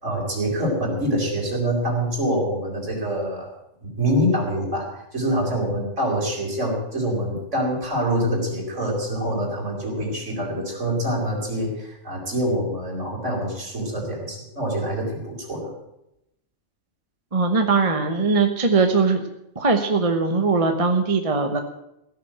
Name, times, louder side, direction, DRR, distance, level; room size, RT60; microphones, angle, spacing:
voice 1, 0.0-3.5 3.8-4.8 5.1-15.7, equal, 65° right, -2 dB, 4.8 m, -25 dB
voice 2, 17.3-19.3 19.5-21.6, right 4 dB, 30° right, 5 dB, 1.1 m, -20 dB
16.5 x 6.9 x 9.2 m, 0.84 s
omnidirectional pair, 1.3 m